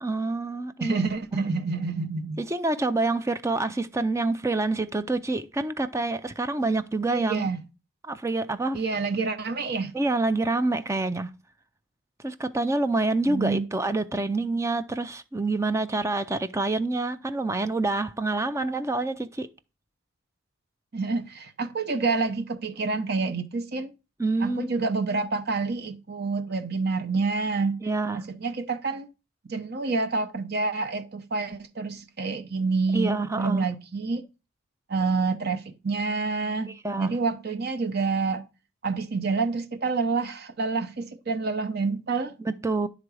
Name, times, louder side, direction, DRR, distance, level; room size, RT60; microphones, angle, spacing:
voice 1, 0.0-1.0 2.4-7.5 8.1-8.8 9.9-11.4 12.2-19.5 24.2-24.7 27.8-28.3 32.9-33.7 36.8-37.1 42.4-42.9, right 2 dB, 15° right, 0.4 m, -27 dB
voice 2, 0.8-2.4 7.1-7.6 8.7-9.9 13.3-13.7 20.9-23.9 24.4-27.8 28.1-29.1 29.5-34.2 34.9-38.4 38.8-42.3, right 4 dB, 50° right, 0.8 m, -28 dB
11.0 x 3.8 x 4.7 m
head